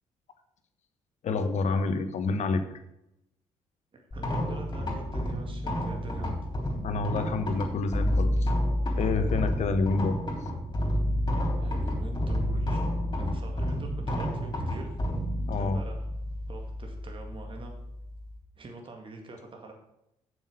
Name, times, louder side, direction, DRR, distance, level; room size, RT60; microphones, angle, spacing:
voice 1, 1.2-2.6 6.8-8.5 9.0-10.2 15.5-15.8, left 3 dB, 60° left, 9 dB, 1.2 m, -28 dB
voice 2, 3.9-6.4 11.6-14.9 15.6-16.1 16.5-17.7 18.6-19.7, right 3 dB, 40° right, 2 dB, 1.9 m, -44 dB
sound 1, 4.1-18.4, equal, 35° left, 3.8 m, -30 dB
7.3 x 6.4 x 6.7 m, 0.84 s
supercardioid pair, 60°, 13 cm